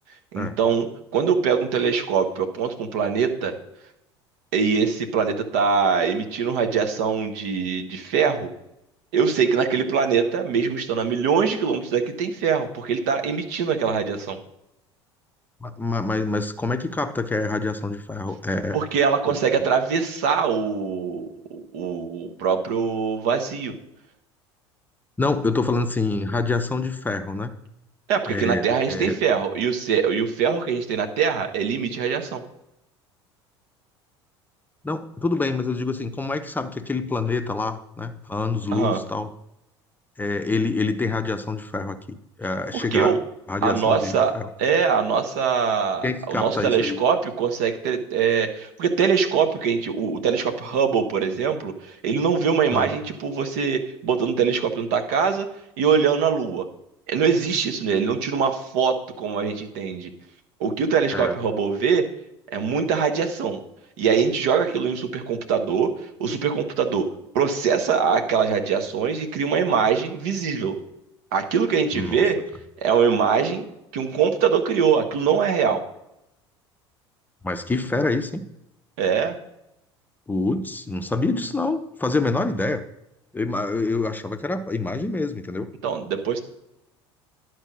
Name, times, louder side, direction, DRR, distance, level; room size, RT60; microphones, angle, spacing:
voice 1, 0.3-3.5 4.5-8.5 9.1-14.4 18.7-23.7 28.1-32.4 38.7-39.0 42.7-43.2 43.6-44.3 44.6-55.5 55.8-56.7 57.1-60.1 60.6-62.1 62.5-63.6 64.0-65.9 66.2-67.1 67.3-70.7 71.3-72.4 72.8-73.6 73.9-75.8 79.0-79.4 85.8-86.4, right 6 dB, 60° right, 6 dB, 1.2 m, -23 dB
voice 2, 15.6-18.8 19.3-19.4 25.2-27.5 28.3-29.2 34.8-39.3 40.2-43.1 43.5-44.5 46.0-47.0 52.7-52.9 61.1-61.4 71.9-72.2 77.4-78.4 80.3-82.8 83.3-85.7, left 3 dB, 10° left, 8 dB, 0.7 m, -26 dB
11.0 x 4.7 x 6.2 m, 0.85 s
figure-of-eight pair, 65°, 15 cm